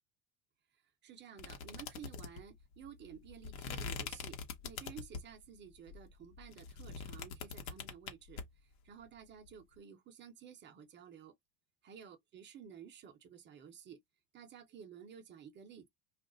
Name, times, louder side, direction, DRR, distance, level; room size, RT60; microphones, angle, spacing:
voice 1, 1.0-4.4 4.6-11.3 11.8-14.0 14.3-15.9, right 8 dB, 25° right, 0.6 m, -53 dB
sound 1, 1.4-5.4 5.9-8.4, left 5 dB, 70° left, 1.0 m, -43 dB
2.4 x 2.1 x 3.7 m
supercardioid pair, 130°, 43 cm